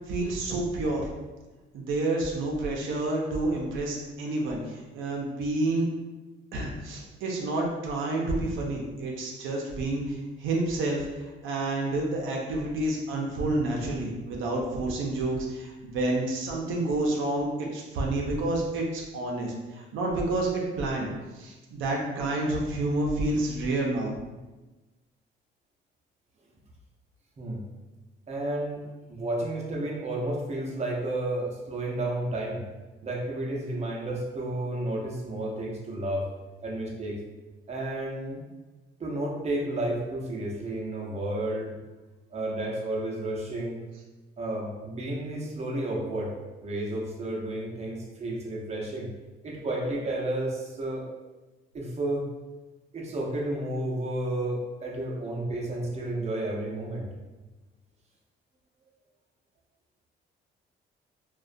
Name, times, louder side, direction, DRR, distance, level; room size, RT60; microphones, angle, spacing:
voice 1, 0.1-1.1 1.7-5.9 6.5-21.1 21.3-24.1, right 2 dB, 80° right, -1 dB, 0.5 m, -29 dB
voice 2, 28.3-28.8 29.1-32.6 33.0-36.3 36.6-37.2 37.7-38.5 39.0-41.8 42.3-43.8 44.4-46.3 46.6-49.1 49.4-51.0 51.7-52.3 52.9-57.1, right 1 dB, 35° right, -2 dB, 0.6 m, -31 dB
2.3 x 2.1 x 2.5 m, 1.2 s
cardioid pair, 90°, 20 cm